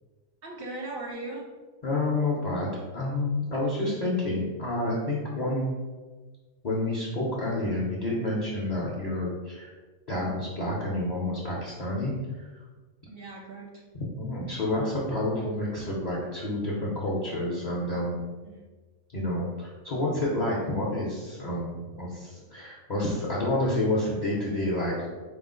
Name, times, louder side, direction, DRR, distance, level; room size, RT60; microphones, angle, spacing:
voice 1, 0.4-1.4 13.0-13.8 18.4-18.7, right 2 dB, 60° right, -1 dB, 0.6 m, -38 dB
voice 2, 1.8-5.7 6.6-9.7 10.1-12.5 14.2-18.2 19.1-25.1, left 1 dB, 45° left, -5 dB, 0.6 m, -29 dB
4.8 x 2.0 x 3.7 m, 1.3 s
omnidirectional pair, 1.3 m